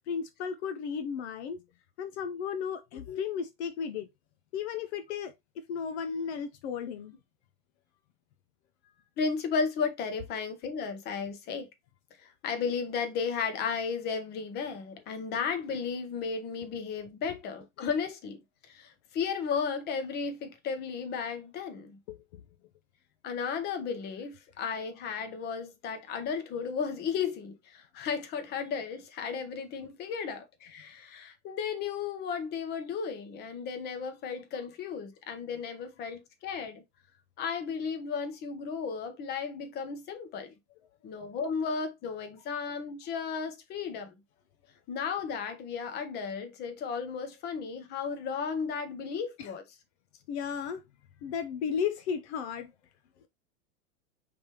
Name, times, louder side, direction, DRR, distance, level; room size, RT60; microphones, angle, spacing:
voice 1, 0.1-1.6 2.0-4.1 4.5-7.1 22.1-22.4 49.4-49.5 50.3-50.8 51.2-52.7, left 7 dB, 60° left, 0.6 m, -34 dB
voice 2, 9.2-11.7 12.2-22.0 23.2-36.8 37.4-40.5 41.0-44.2 44.9-49.6, left 6 dB, 25° left, 0.9 m, -34 dB
5.1 x 3.4 x 2.9 m
supercardioid pair, 145°, 37 cm